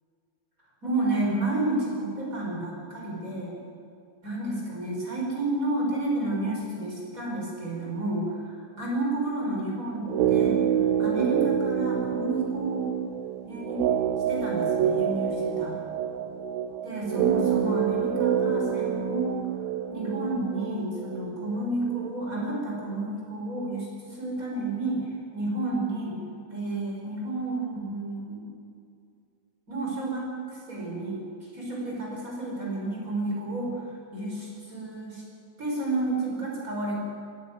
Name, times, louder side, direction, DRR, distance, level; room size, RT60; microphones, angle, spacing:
voice 1, 0.8-3.6 4.2-10.6 11.0-12.9 13.5-13.8 14.3-15.8 16.8-19.4 19.9-26.2 26.5-28.5 29.7-31.2 31.5-35.2 35.6-37.0, right 2 dB, 20° right, -3 dB, 5.5 m, -31 dB
sound 1, 10.0-22.2 22.4-22.5, right 8 dB, 85° right, 1.6 m, -27 dB
24.0 x 12.5 x 9.5 m, 2.4 s
omnidirectional pair, 4.3 m